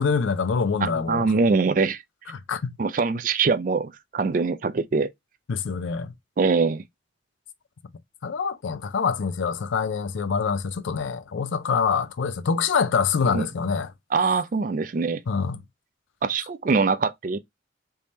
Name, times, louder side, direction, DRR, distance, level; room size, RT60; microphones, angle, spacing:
voice 1, 0.0-1.3 2.3-2.8 5.5-6.1 8.2-13.9 15.3-15.6, left 5 dB, 90° left, 0.4 m, -25 dB
voice 2, 0.8-2.0 2.8-5.1 6.4-6.8 13.3-13.5 14.1-15.2 16.2-17.4, right 4 dB, 45° right, 0.4 m, -23 dB
3.4 x 2.7 x 3.1 m
head